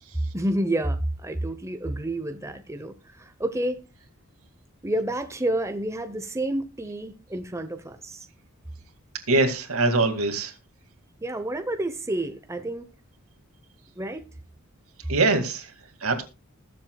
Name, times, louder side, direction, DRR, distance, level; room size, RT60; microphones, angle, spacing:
voice 1, 0.3-3.8 4.8-8.3 11.2-12.9 14.0-14.2, right 1 dB, 15° right, 0.9 m, -29 dB
voice 2, 9.3-10.5 15.1-15.7 16.0-16.2, right 3 dB, 85° right, 2.2 m, -23 dB
20.0 x 7.3 x 2.3 m
head